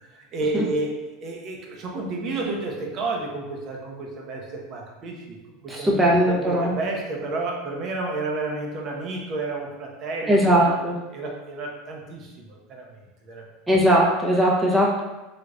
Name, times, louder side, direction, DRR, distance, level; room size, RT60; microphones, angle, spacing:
voice 1, 0.1-0.9 1.2-5.4 5.6-10.8 11.1-12.9 13.2-13.4, right 2 dB, 45° right, 0 dB, 0.8 m, -31 dB
voice 2, 5.7-6.7 10.3-11.0 13.7-15.0, equal, 10° right, -3 dB, 0.7 m, -19 dB
3.4 x 3.0 x 2.5 m, 1.1 s
supercardioid pair, 110°, 0 cm